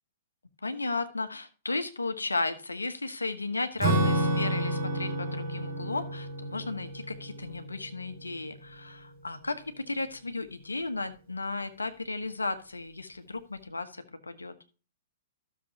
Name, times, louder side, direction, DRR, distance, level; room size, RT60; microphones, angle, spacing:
voice 1, 0.6-14.5, left 3 dB, 85° left, 9 dB, 1.2 m, -34 dB
Acoustic guitar / Strum, 3.8-8.6, right 1 dB, 30° right, 5.6 m, -30 dB
13.0 x 7.0 x 2.8 m, 0.36 s
figure-of-eight pair, 110°, 0 cm